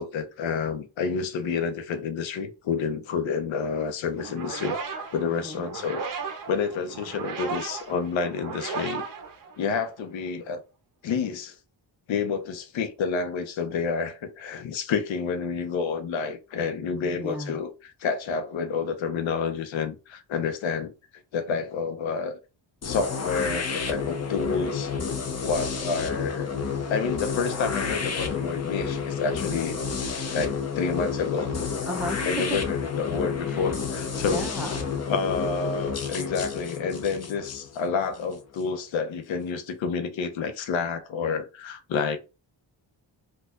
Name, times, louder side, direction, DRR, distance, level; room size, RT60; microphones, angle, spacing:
voice 1, 0.0-6.0 6.5-9.0 9.6-10.6 11.0-11.6 12.1-17.7 18.0-20.9 21.3-22.4 22.8-24.9 25.4-26.5 26.9-31.5 32.2-34.5 35.1-42.2, left 5 dB, 90° left, 0.7 m, -29 dB
sound 1, 4.2-10.0, right 5 dB, 45° right, 0.6 m, -35 dB
voice 2, 5.3-5.6 17.1-17.6 31.9-32.6 33.4-33.8 34.1-35.0, equal, 5° right, 0.4 m, -35 dB
sound 2, 22.8-38.6, left 5 dB, 35° left, 0.6 m, -30 dB
4.3 x 2.3 x 2.4 m
cardioid pair, 105°, 45 cm